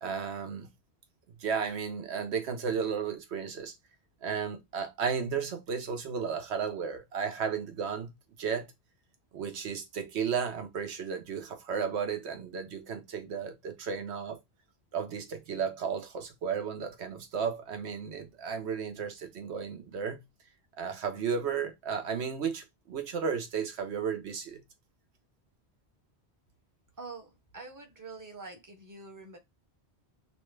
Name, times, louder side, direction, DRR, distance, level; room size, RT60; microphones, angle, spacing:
voice 1, 0.0-0.7 1.4-3.7 4.2-8.1 8.4-8.7 9.3-14.4 14.9-20.2 20.8-24.6, right 6 dB, 85° right, 1.1 m, -34 dB
voice 2, 27.0-29.4, right 3 dB, 20° right, 0.7 m, -45 dB
3.1 x 2.2 x 3.1 m
omnidirectional pair, 1.1 m